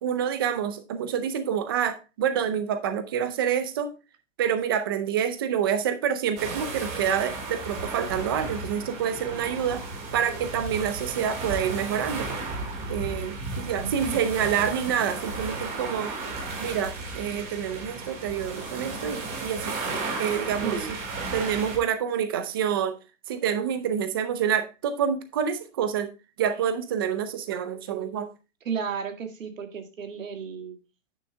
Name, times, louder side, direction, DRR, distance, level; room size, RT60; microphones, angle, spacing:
voice 1, 0.0-3.9 4.4-9.8 10.1-12.3 12.9-16.1 16.6-19.8 20.2-21.0 21.3-23.0 23.3-26.1 26.4-28.3, right 8 dB, 20° right, 0.5 m, -27 dB
Waves Real Shingle, 6.4-21.8, right 3 dB, 40° right, 3.2 m, -34 dB
voice 2, 13.8-14.2 20.6-20.9 28.7-30.8, right 6 dB, 80° right, 2.2 m, -33 dB
9.4 x 6.0 x 3.3 m
hypercardioid pair, 160°, 38 cm